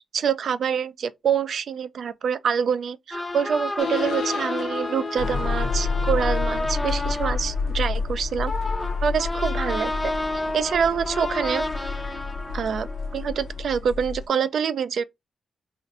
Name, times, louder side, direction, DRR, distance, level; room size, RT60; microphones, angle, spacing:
voice 1, 0.1-8.5 9.0-10.1 10.5-11.6 12.5-12.9 13.1-15.0, right 7 dB, 70° right, 0.3 m, -26 dB
sound 1, 3.1-13.6, left 1 dB, 25° left, 0.5 m, -31 dB
sound 2, 3.8-14.3, left 4 dB, 80° left, 0.4 m, -29 dB
2.5 x 2.4 x 4.0 m
cardioid pair, 65°, 0 cm